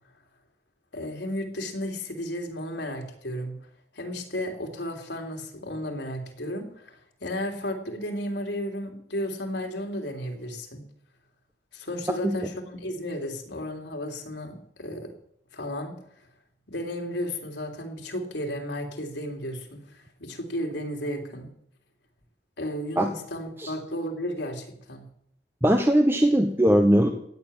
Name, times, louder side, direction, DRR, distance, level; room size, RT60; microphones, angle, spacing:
voice 1, 0.9-3.6 3.9-10.8 11.7-15.1 15.5-15.9 16.7-21.5 22.6-25.0, equal, 85° left, 3 dB, 3.2 m, -33 dB
voice 2, 25.6-27.1, equal, 15° right, 4 dB, 1.1 m, -20 dB
16.0 x 6.9 x 9.9 m, 0.70 s
head